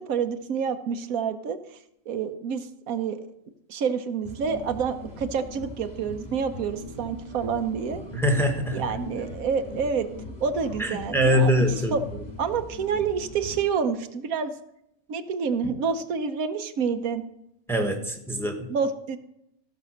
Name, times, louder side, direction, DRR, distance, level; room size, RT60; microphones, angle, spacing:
voice 1, 0.0-1.6 2.1-3.2 3.7-8.0 8.7-10.1 10.4-11.6 11.9-12.0 12.4-14.5 15.1-17.2 18.7-19.2, right 6 dB, 85° right, 9 dB, 1.3 m, -28 dB
sound 1, 4.2-13.6, left 1 dB, 30° left, 2.1 m, -41 dB
voice 2, 8.1-8.8 10.8-11.9 17.7-18.5, equal, ahead, 4 dB, 1.2 m, -23 dB
15.5 x 5.5 x 6.4 m, 0.82 s
omnidirectional pair, 1.4 m